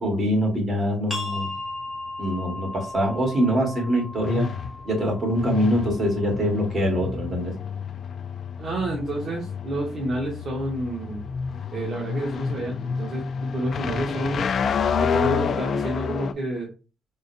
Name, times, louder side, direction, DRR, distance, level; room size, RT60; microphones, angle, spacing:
voice 1, 0.0-1.5 2.2-4.5 4.8-7.5, equal, 40° right, 0 dB, 2.2 m, -24 dB
sound 1, 1.1-6.5, left 2 dB, 10° left, 1.8 m, -36 dB
sound 2, 1.3-16.3, left 6 dB, 55° left, 0.3 m, -29 dB
voice 2, 8.6-11.2 11.7-13.2 13.5-14.5 15.0-16.7, right 1 dB, 55° right, -3 dB, 1.2 m, -29 dB
3.9 x 3.8 x 2.2 m, 0.32 s
cardioid pair, 90°, 0 cm